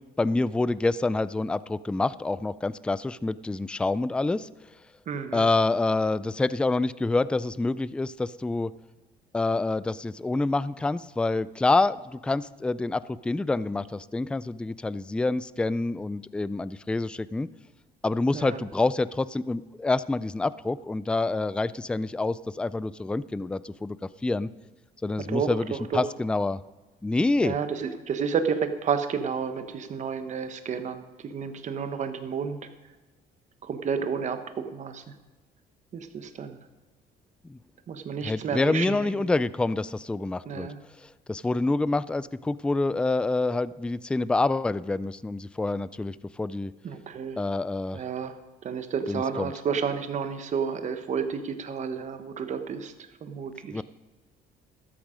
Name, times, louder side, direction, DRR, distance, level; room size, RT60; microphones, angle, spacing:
voice 1, 0.2-4.5 5.3-8.7 9.3-17.5 18.0-24.0 24.2-24.5 25.0-26.6 27.0-27.6 37.4-37.6 38.2-40.7 41.3-46.7 47.4-48.0 49.1-49.5 53.7-53.8, left 2 dB, 5° left, 17 dB, 0.3 m, -27 dB
voice 2, 5.1-5.5 18.3-18.6 25.3-26.0 27.4-32.6 33.6-35.0 35.9-36.6 37.9-39.3 40.4-40.8 46.8-47.4 47.9-48.3 48.6-52.9 53.2-53.8, right 6 dB, 45° right, 8 dB, 1.2 m, -31 dB
13.0 x 9.0 x 5.2 m, 1.2 s
cardioid pair, 110°, 17 cm